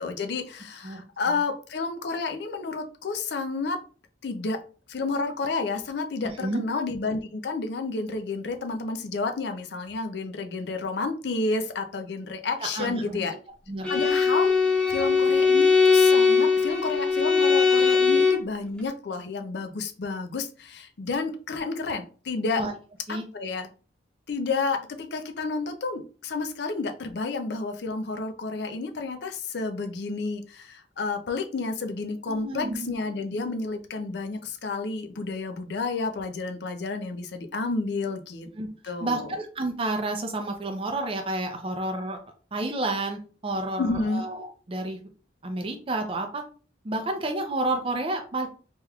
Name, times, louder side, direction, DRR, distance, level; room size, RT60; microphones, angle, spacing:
voice 1, 0.0-3.8 4.2-4.6 4.9-13.3 13.9-14.5 14.9-22.6 23.3-23.7 24.3-38.5 38.8-39.4 43.8-44.2, left 3 dB, 60° left, 7 dB, 0.5 m, -30 dB
voice 2, 0.8-1.4 6.2-6.6 12.6-13.3 13.7-13.9 22.6-22.7 23.1-23.3 32.3-32.9 38.6-38.7 39.0-42.2 42.5-45.0 45.4-46.4 46.8-48.5, right 2 dB, 30° right, 4 dB, 0.5 m, -30 dB
Bowed string instrument, 13.8-18.5, left 5 dB, 5° left, 0.7 m, -20 dB
3.3 x 3.0 x 2.3 m, 0.38 s
head